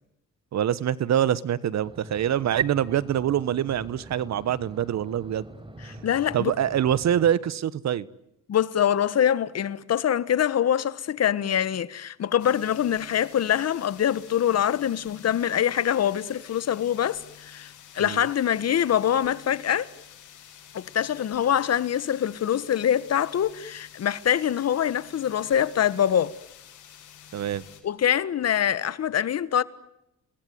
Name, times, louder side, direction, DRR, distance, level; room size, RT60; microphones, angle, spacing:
voice 1, 0.5-5.5 6.3-8.1 18.0-18.2 27.3-27.6, right 10 dB, 65° right, 1.3 m, -25 dB
sound 1, 1.8-7.3, right 1 dB, 15° right, 4.6 m, -44 dB
voice 2, 5.8-6.5 8.5-19.9 20.7-26.3 27.8-29.6, left 9 dB, 55° left, 1.5 m, -24 dB
sound 2, 12.4-27.8, left 10 dB, 80° left, 7.1 m, -49 dB
30.0 x 20.5 x 9.5 m
cardioid pair, 90°, 30 cm